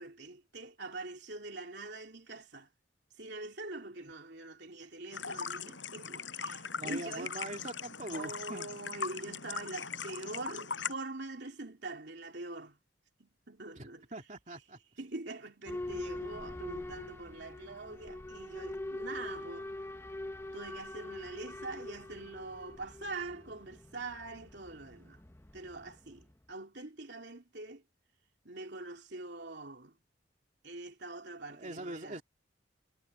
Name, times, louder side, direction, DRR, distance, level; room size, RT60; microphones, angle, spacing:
voice 1, 0.0-2.7 3.1-7.3 8.1-12.8 13.2-14.3 14.6-14.7 15.0-19.7 20.5-25.2 25.5-27.8 28.4-30.0 30.6-32.2, right 2 dB, 60° right, 3.2 m, -44 dB
sound 1, 5.1-10.9, left 6 dB, 70° left, 7.0 m, -40 dB
voice 2, 6.5-8.7 13.8-14.8 31.6-32.2, right 1 dB, 40° right, 2.9 m, -43 dB
Boat Water vehicle / Alarm, 15.6-26.3, left 1 dB, 15° left, 0.7 m, -44 dB
head